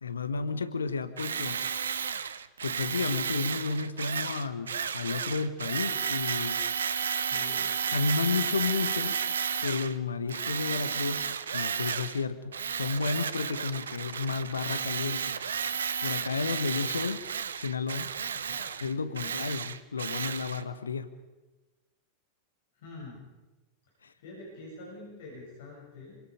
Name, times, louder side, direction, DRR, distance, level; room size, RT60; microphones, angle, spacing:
voice 1, 0.0-1.6 2.1-2.3 2.6-6.6 7.9-9.2 9.6-15.4 16.0-17.3 17.6-18.1 18.8-21.1 24.0-24.1, left 4 dB, 75° left, 11 dB, 1.3 m, -32 dB
Tools, 1.2-10.0 10.3-12.2 12.5-20.6, right 7 dB, 70° right, 0.9 m, -32 dB
voice 2, 7.3-7.7 18.3-18.7 19.1-19.3 22.7-23.2 24.2-26.2, left 2 dB, 55° left, -3 dB, 7.9 m, -46 dB
27.5 x 25.5 x 5.2 m, 1.1 s
figure-of-eight pair, 90°, 0 cm